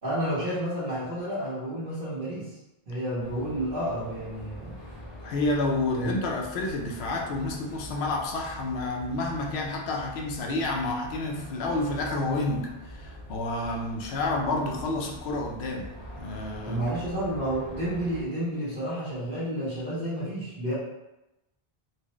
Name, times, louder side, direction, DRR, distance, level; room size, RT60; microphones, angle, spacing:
voice 1, 0.0-2.5 2.9-4.7 5.9-6.1 16.6-20.7, right 1 dB, 60° right, -13 dB, 1.4 m, -30 dB
sound 1, 3.2-18.2, equal, 30° left, 0.7 m, -44 dB
voice 2, 5.2-17.0, left 2 dB, 90° left, 1 dB, 0.8 m, -30 dB
4.3 x 2.1 x 3.0 m, 0.96 s
omnidirectional pair, 1.0 m